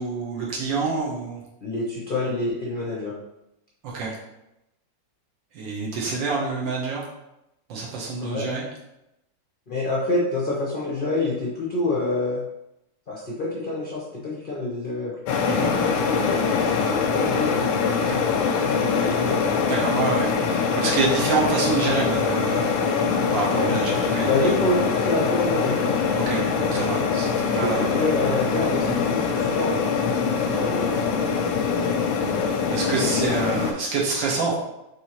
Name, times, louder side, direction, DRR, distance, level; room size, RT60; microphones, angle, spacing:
voice 1, 0.0-1.4 3.8-4.2 5.5-7.0 7.7-8.6 15.5-15.7 19.6-24.3 26.3-28.1 28.8-29.0 32.7-34.6, right 4 dB, 80° right, -4 dB, 1.6 m, -27 dB
voice 2, 1.6-3.1 8.2-8.5 9.7-12.4 13.1-15.2 15.5-18.3 18.8-19.4 23.5-23.7 24.2-25.9 27.6-30.9, left 2 dB, 65° left, -4 dB, 0.5 m, -27 dB
sound 1, 15.3-33.7, left 5 dB, 90° left, 1.4 m, -23 dB
5.2 x 3.2 x 2.9 m, 0.88 s
omnidirectional pair, 2.1 m